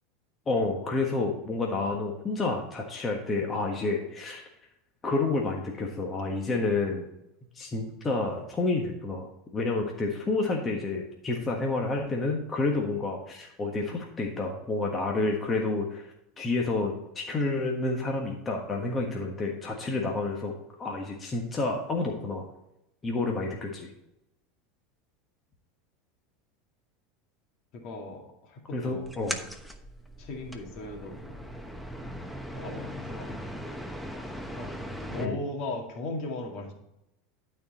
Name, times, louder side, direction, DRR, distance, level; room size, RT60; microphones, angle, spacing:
voice 1, 0.5-4.4 5.0-7.1 7.5-16.1 16.4-20.5 20.8-22.4 23.0-23.9 28.7-29.4 35.2-35.4, left 3 dB, 25° left, 0 dB, 1.4 m, -29 dB
voice 2, 27.7-29.5 30.2-31.3 32.5-33.4 34.2-34.8 35.1-36.7, left 2 dB, 55° left, 2 dB, 2.2 m, -38 dB
sound 1, 29.0-35.3, equal, ahead, 1.0 m, -39 dB
12.0 x 4.6 x 4.2 m, 0.86 s
hypercardioid pair, 95°, 0 cm